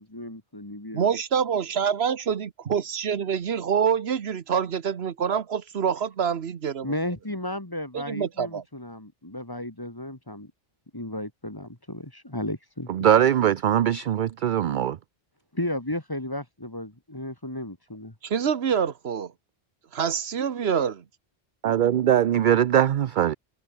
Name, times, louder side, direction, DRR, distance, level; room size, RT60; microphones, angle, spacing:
voice 1, 0.0-1.1 6.8-10.5 10.9-13.1 15.5-18.1, left 1 dB, 20° left, 2.3 m, -34 dB
voice 2, 0.9-6.9 7.9-8.6 18.2-19.3 19.9-21.0, right 7 dB, 75° right, 1.2 m, -26 dB
voice 3, 12.9-15.0 21.6-23.3, right 10 dB, 55° right, 0.6 m, -21 dB
omnidirectional pair, 1.1 m